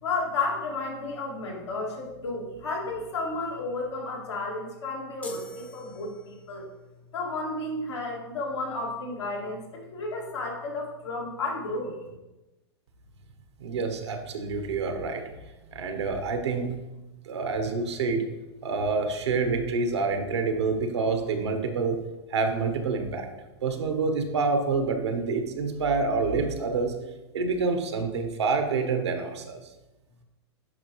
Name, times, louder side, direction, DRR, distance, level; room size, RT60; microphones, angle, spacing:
voice 1, 0.0-6.7 7.1-11.9, left 3 dB, 85° left, -2 dB, 2.3 m, -32 dB
sound 1, 5.2-6.6, right 1 dB, 10° left, 0.7 m, -41 dB
voice 2, 13.6-15.2 15.7-16.7 17.2-18.2 18.6-22.0 22.3-23.3 23.6-26.9 27.3-29.6, right 4 dB, 80° right, 6 dB, 1.2 m, -27 dB
10.5 x 4.6 x 3.1 m, 1.1 s
hypercardioid pair, 110°, 14 cm